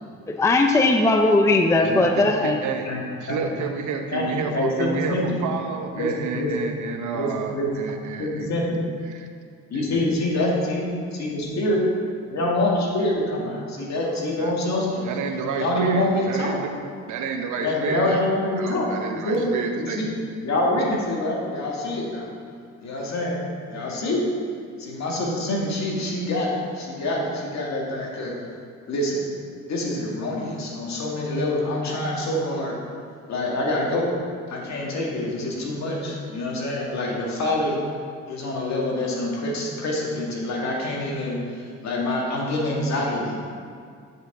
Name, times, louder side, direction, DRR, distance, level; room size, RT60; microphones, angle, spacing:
voice 1, 0.3-2.6, left 2 dB, 10° left, 4 dB, 0.5 m, -18 dB
voice 2, 1.8-2.9 3.2-8.5 9.0-9.3 9.7-10.1 14.0-14.5 14.9-16.7 17.0-18.2 18.6-20.0, right 5 dB, 75° right, 5 dB, 0.8 m, -30 dB
voice 3, 4.1-5.4 6.0-6.5 7.1-7.7 8.2-8.8 9.7-10.9 11.1-11.8 12.3-15.1 15.6-16.6 17.6-20.1 20.4-22.3 22.8-23.4 23.7-24.3 24.8-28.3 28.9-29.3 29.7-32.8 33.3-34.1 34.5-37.8 38.3-41.4 41.8-43.4, left 1 dB, 65° left, -3 dB, 1.9 m, -26 dB
9.4 x 5.3 x 3.8 m, 2.2 s
cardioid pair, 90°, 30 cm